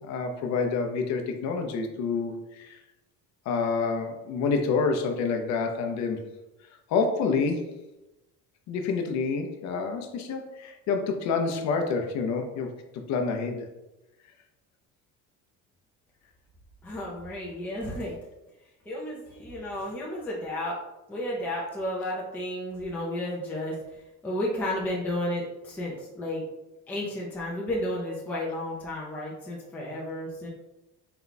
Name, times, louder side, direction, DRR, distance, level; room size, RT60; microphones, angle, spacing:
voice 1, 0.0-2.8 3.5-6.2 6.9-7.8 8.7-13.7, left 4 dB, 55° left, 5 dB, 0.6 m, -28 dB
voice 2, 16.8-18.2 18.9-20.8 21.1-26.4 26.9-30.5, left 1 dB, 5° left, -5 dB, 0.5 m, -32 dB
4.5 x 2.2 x 3.9 m, 0.99 s
cardioid pair, 175°, 32 cm